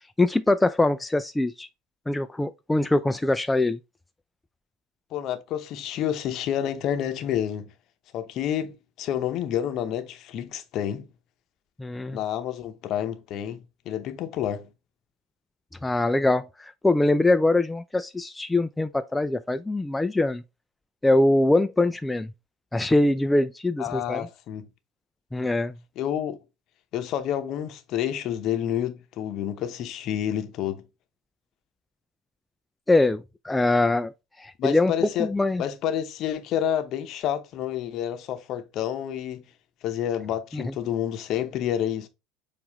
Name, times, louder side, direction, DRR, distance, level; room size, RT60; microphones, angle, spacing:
voice 1, 0.2-1.7 2.1-3.8 11.8-12.2 15.8-20.4 21.0-22.3 22.7-24.3 25.3-25.7 32.9-34.1 34.4-34.9 35.2-35.6 40.5-40.6, left 2 dB, 10° left, 0.3 m, -23 dB
voice 2, 5.1-7.7 8.1-11.1 12.1-14.7 23.8-24.7 26.0-26.4 26.9-30.8 34.6-35.3 35.6-39.4 39.8-42.1, left 10 dB, 50° left, 0.7 m, -29 dB
7.0 x 2.5 x 3.0 m
figure-of-eight pair, 70°, 0 cm